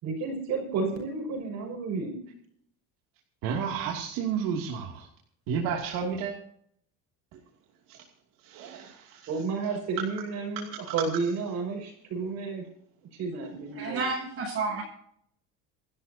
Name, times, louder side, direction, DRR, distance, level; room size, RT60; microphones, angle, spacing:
voice 1, 0.0-2.2 9.3-12.6 13.1-14.1, right 4 dB, 50° right, 2 dB, 5.9 m, -31 dB
voice 2, 3.4-5.1 5.5-6.3 7.3-7.4 7.9-8.0 8.4-9.3, right 6 dB, 65° right, 0 dB, 2.8 m, -31 dB
voice 3, 13.8-14.8, right 4 dB, 35° right, -3 dB, 6.9 m, -30 dB
28.0 x 13.0 x 2.9 m, 0.66 s
cardioid pair, 160°, 36 cm